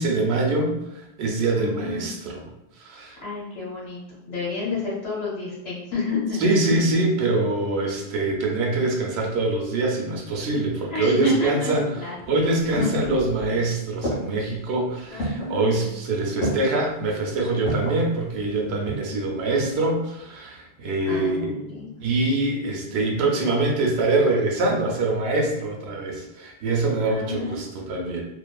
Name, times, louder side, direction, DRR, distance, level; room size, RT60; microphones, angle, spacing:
voice 1, 0.0-2.4 2.8-3.2 6.4-11.8 12.3-21.5 22.0-28.2, right 2 dB, 85° right, 0 dB, 0.9 m, -24 dB
voice 2, 1.6-2.3 3.2-4.0 4.3-6.4 10.9-12.9 15.1-15.9 21.1-22.0 27.0-27.6, left 2 dB, 75° left, -7 dB, 1.3 m, -30 dB
sound 1, 12.2-13.6 14.0-14.6 15.2-15.6 16.4-16.8 17.7-18.1 18.6-19.2 19.5-19.6, right 1 dB, 25° left, 1.2 m, -30 dB
2.5 x 2.3 x 2.2 m, 0.88 s
omnidirectional pair, 1.1 m